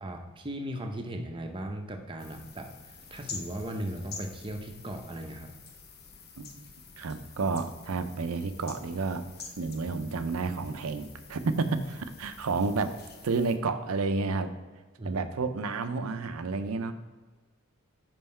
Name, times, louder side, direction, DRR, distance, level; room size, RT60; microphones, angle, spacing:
voice 1, 0.0-5.5 15.0-15.2, right 1 dB, 25° right, 4 dB, 0.6 m, -37 dB
sound 1, 2.2-13.6, left 5 dB, 45° left, 0.7 m, -48 dB
voice 2, 7.0-9.2 9.6-13.0 13.2-14.5 15.0-16.9, right 4 dB, 80° right, 10 dB, 0.5 m, -30 dB
5.6 x 5.3 x 4.3 m, 1.3 s
head